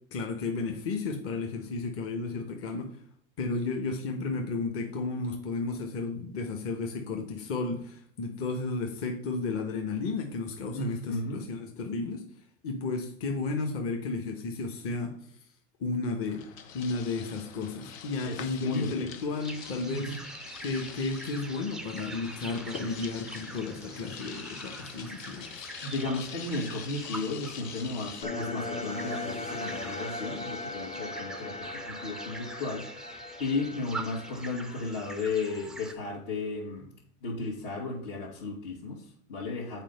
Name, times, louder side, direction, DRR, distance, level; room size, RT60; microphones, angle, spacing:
voice 1, 0.1-3.0 3.4-12.2 12.6-15.1 15.8-16.4 16.7-20.1 20.6-25.7, left 3 dB, 35° left, 2 dB, 1.3 m, -33 dB
voice 2, 10.7-11.4 18.2-19.1 19.9-20.2 25.8-32.8 33.4-36.9 37.2-39.8, left 3 dB, 55° left, -5 dB, 2.3 m, -34 dB
sound 1, 16.2-28.2, left 7 dB, 80° left, 1.2 m, -45 dB
sound 2, 19.4-35.9, right 2 dB, ahead, 0.3 m, -44 dB
sound 3, 28.2-35.4, left 3 dB, 15° left, 0.9 m, -39 dB
7.4 x 4.6 x 5.5 m, 0.63 s
hypercardioid pair, 115°, 40 cm